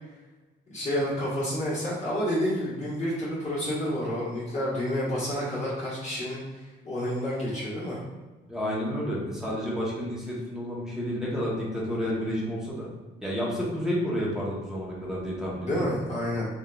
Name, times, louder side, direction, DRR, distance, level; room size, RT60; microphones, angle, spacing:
voice 1, 0.7-8.0 15.6-16.5, equal, 35° left, -9 dB, 1.4 m, -29 dB
voice 2, 8.5-12.9 13.2-16.0, equal, 5° right, -5 dB, 1.0 m, -30 dB
3.6 x 2.6 x 2.3 m, 1.2 s
cardioid pair, 90°, 20 cm